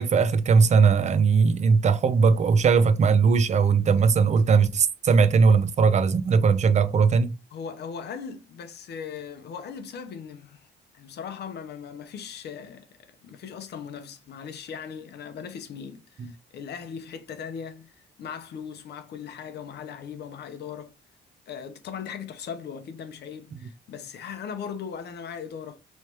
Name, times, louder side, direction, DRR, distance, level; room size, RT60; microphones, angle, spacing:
voice 1, 0.0-7.3 16.2-16.3, right 5 dB, 40° right, 0.5 m, -19 dB
voice 2, 7.5-10.7 10.9-21.0 21.5-25.8, left 7 dB, 60° left, 0.7 m, -38 dB
3.3 x 3.2 x 2.9 m
cardioid pair, 95°, 19 cm